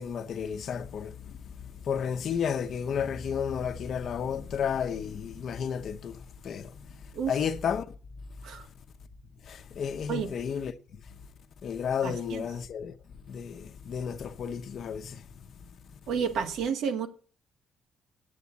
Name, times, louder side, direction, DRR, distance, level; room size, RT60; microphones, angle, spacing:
voice 1, 0.0-1.4 1.9-6.2 6.4-6.7 7.3-7.8 9.5-10.7 11.6-12.9 13.3-15.2, left 7 dB, 55° left, 0.9 m, -32 dB
voice 2, 12.0-12.4 16.1-17.1, right 7 dB, 80° right, 1.7 m, -30 dB
8.4 x 8.2 x 8.4 m
cardioid pair, 150°, 0 cm